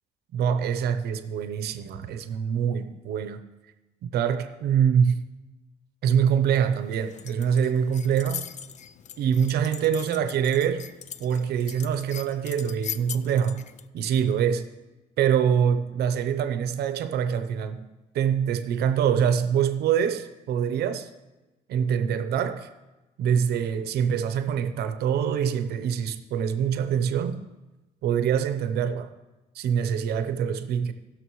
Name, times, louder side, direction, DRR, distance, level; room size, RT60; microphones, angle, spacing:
voice 1, 0.3-3.4 4.0-5.2 6.0-8.4 9.2-10.9 11.2-13.6 13.9-14.7 15.2-17.9 18.1-21.1 21.7-22.7 23.2-27.4 28.0-29.1 29.5-30.9, right 8 dB, 70° right, 0.8 m, -24 dB
sound 1, 6.5-13.9, left 9 dB, 45° left, 0.5 m, -41 dB
19.5 x 6.5 x 3.1 m
cardioid pair, 110°, 17 cm